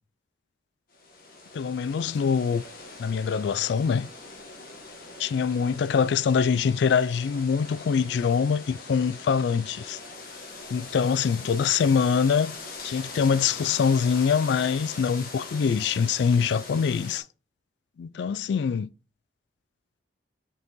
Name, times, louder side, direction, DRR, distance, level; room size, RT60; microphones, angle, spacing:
sound 1, 0.9-17.2, left 3 dB, 50° left, 1.4 m, -42 dB
voice 1, 1.5-2.6 3.0-4.1 5.2-10.0 10.7-12.6 12.8-17.2 18.0-18.9, left 6 dB, 65° left, 0.3 m, -24 dB
6.4 x 5.4 x 3.0 m
head